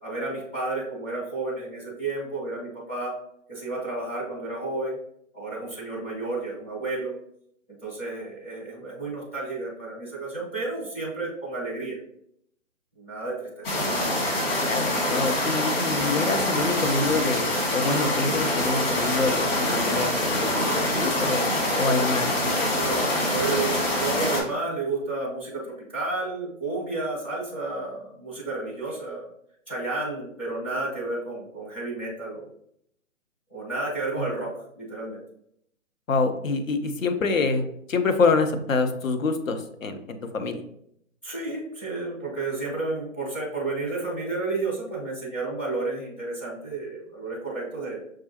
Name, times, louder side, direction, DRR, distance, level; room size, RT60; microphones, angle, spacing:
voice 1, 0.0-3.1 3.5-5.0 5.3-7.1 7.8-12.0 13.0-13.7 21.8-22.1 22.7-29.3 29.7-32.5 33.5-35.2 41.2-48.1, right 3 dB, 10° left, -8 dB, 0.4 m, -31 dB
sound 1, 13.6-24.4, left 1 dB, 45° left, 1.7 m, -25 dB
voice 2, 14.6-20.7 20.9-21.4 21.8-22.8 34.2-34.3 36.1-40.6, left 3 dB, 80° left, 8 dB, 0.7 m, -26 dB
6.0 x 2.4 x 2.8 m, 0.73 s
figure-of-eight pair, 130°, 39 cm